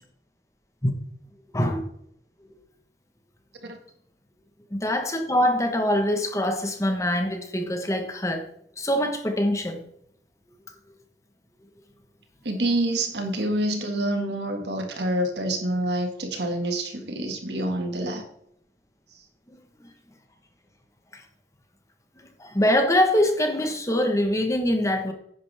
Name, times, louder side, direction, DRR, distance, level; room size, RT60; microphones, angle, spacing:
voice 1, 4.7-8.5 8.8-9.8 22.4-25.1, left 1 dB, 15° left, 1.3 m, -23 dB
voice 2, 12.4-18.2, right 1 dB, 70° right, 2.0 m, -27 dB
10.0 x 9.2 x 3.5 m
head